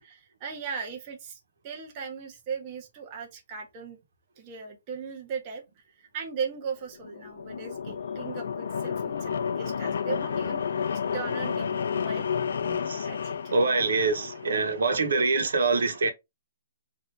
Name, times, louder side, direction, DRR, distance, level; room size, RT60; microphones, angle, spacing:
voice 1, 0.0-4.0 4.4-5.6 6.0-10.6 11.1-12.3 13.1-13.5 15.0-15.2, right 6 dB, 20° right, 0.6 m, -38 dB
sound 1, 6.9-14.8, left 7 dB, 60° left, 0.4 m, -31 dB
voice 2, 12.6-13.1 13.5-16.1, right 3 dB, 75° right, 1.0 m, -25 dB
3.3 x 2.6 x 4.3 m
hypercardioid pair, 180°, 0 cm